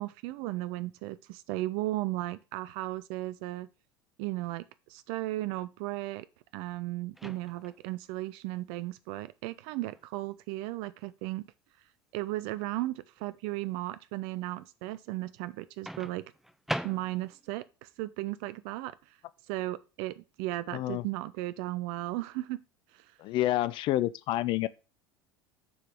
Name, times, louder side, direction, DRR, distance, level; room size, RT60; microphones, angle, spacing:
voice 1, 0.0-3.7 4.2-6.3 6.5-11.4 12.1-16.2 16.8-19.2 19.5-22.6 22.9-23.1, right 17 dB, 50° right, 0.4 m, -35 dB
Microwave oven, 7.1-7.8 9.8-10.0 15.9-17.5, equal, ahead, 0.7 m, -39 dB
voice 2, 20.7-21.0 23.2-24.7, left 15 dB, 40° left, 0.4 m, -28 dB
6.9 x 4.7 x 6.4 m
figure-of-eight pair, 75°, 13 cm